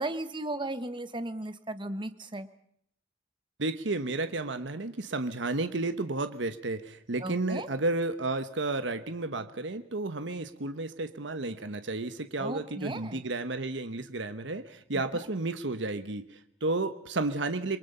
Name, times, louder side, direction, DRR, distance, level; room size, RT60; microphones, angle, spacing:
voice 1, 0.0-2.5 7.2-7.7 12.4-13.2 14.9-15.0, right 2 dB, 25° right, 11 dB, 1.3 m, -36 dB
voice 2, 3.6-17.8, right 2 dB, 75° right, 10 dB, 1.2 m, -32 dB
27.5 x 22.5 x 5.5 m, 0.68 s
head